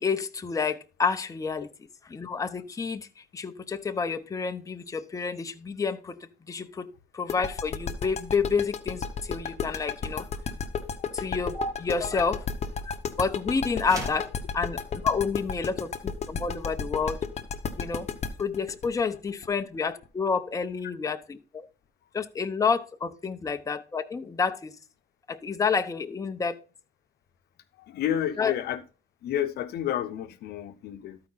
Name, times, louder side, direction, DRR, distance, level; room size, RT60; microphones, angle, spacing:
voice 1, 0.0-1.7 2.0-3.1 3.3-6.9 7.1-10.3 11.1-12.4 12.9-14.3 14.5-17.2 17.8-18.1 18.4-21.7 22.1-24.7 25.3-26.6 28.4-28.5, left 5 dB, 20° left, 0.7 m, -29 dB
sound 1, 7.3-20.0, left 6 dB, 40° left, 1.0 m, -32 dB
sound 2, 13.8-14.3, right 1 dB, 20° right, 3.8 m, -36 dB
voice 2, 27.9-28.8 29.2-31.2, left 10 dB, 70° left, 0.8 m, -30 dB
13.0 x 4.8 x 3.9 m
cardioid pair, 110°, 17 cm